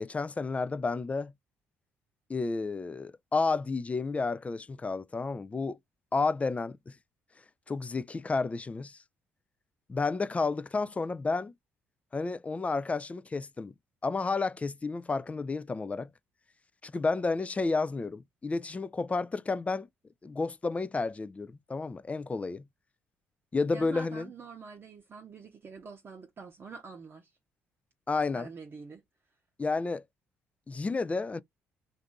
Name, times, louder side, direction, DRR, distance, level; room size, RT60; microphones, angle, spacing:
voice 1, 0.0-1.3 2.3-5.8 6.1-6.9 7.7-9.0 9.9-11.5 12.1-13.7 14.0-16.1 16.8-19.9 20.2-22.6 23.5-24.3 28.1-28.5 29.6-30.0 30.7-31.4, left 3 dB, 25° left, 0.3 m, -31 dB
voice 2, 23.7-27.3 28.3-29.0, right 4 dB, 40° right, 0.7 m, -46 dB
2.6 x 2.5 x 3.5 m
hypercardioid pair, 55°, 5 cm